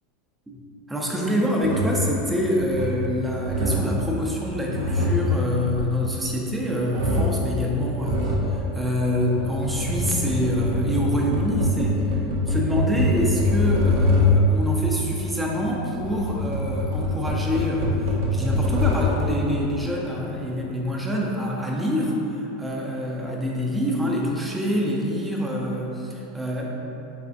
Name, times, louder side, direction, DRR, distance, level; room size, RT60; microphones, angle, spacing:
voice 1, 0.9-12.2 12.5-22.1 22.4-26.8, equal, 10° right, -3 dB, 0.5 m, -26 dB
sound 1, 1.6-2.1 2.5-3.1 3.4-4.0 4.5-6.5 6.9-7.5 8.0-8.5 9.2-14.6 15.6-19.3, left 2 dB, 85° right, 0.6 m, -24 dB
3.8 x 3.2 x 2.5 m, 3.0 s
supercardioid pair, 125°, 0 cm